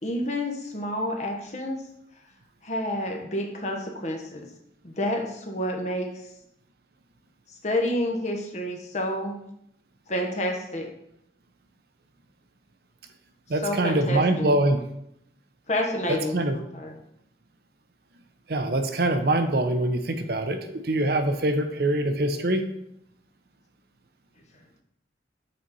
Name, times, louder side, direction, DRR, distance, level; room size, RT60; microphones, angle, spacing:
voice 1, 0.0-1.8 2.6-4.5 4.8-6.2 7.6-9.3 10.1-10.9 13.6-14.6 15.7-16.4 16.7-16.9, left 1 dB, 40° left, 2 dB, 1.0 m, -29 dB
voice 2, 13.5-14.8 16.1-16.6 18.5-22.6, right 1 dB, 55° right, 7 dB, 0.6 m, -24 dB
7.5 x 4.0 x 4.1 m, 0.77 s
head